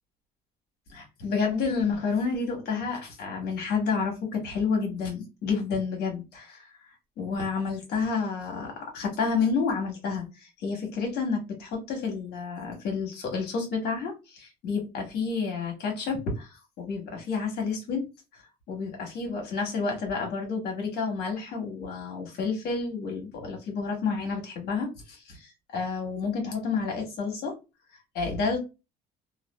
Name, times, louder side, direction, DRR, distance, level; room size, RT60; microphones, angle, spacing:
voice 1, 0.9-6.7 7.2-18.1 18.7-27.6 28.1-28.6, left 5 dB, 75° left, 2 dB, 1.3 m, -30 dB
2.6 x 2.3 x 2.2 m, 0.26 s
cardioid pair, 110°, 17 cm